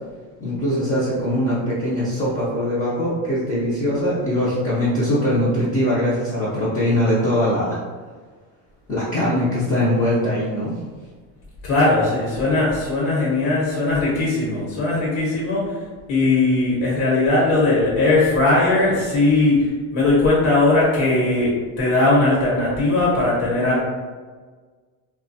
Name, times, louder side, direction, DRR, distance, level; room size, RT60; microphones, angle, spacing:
voice 1, 0.4-7.8 8.9-10.7, equal, 20° left, -10 dB, 0.5 m, -21 dB
voice 2, 11.6-15.6 16.1-19.6 19.9-21.5 21.8-23.8, left 2 dB, 75° left, -6 dB, 1.1 m, -19 dB
3.0 x 2.2 x 2.7 m, 1.4 s
cardioid pair, 150°, 40 cm